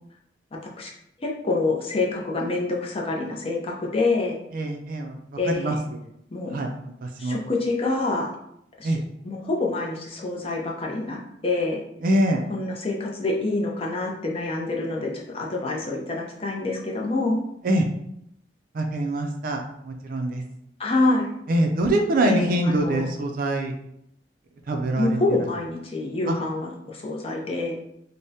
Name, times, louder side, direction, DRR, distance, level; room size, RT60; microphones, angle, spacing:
voice 1, 1.2-4.4 5.4-5.8 6.3-6.6 7.2-8.3 8.8-8.9 9.2-11.8 12.5-17.4 20.8-21.3 22.2-23.1 25.0-27.8, left 2 dB, 30° left, -1 dB, 0.5 m, -26 dB
voice 2, 4.5-5.2 5.5-6.0 6.5-7.4 8.8-9.0 12.0-12.4 17.6-17.9 18.7-20.4 21.5-23.7 24.7-25.2 26.3-26.4, right 1 dB, 50° right, 3 dB, 0.4 m, -24 dB
3.4 x 2.1 x 2.7 m, 0.76 s
head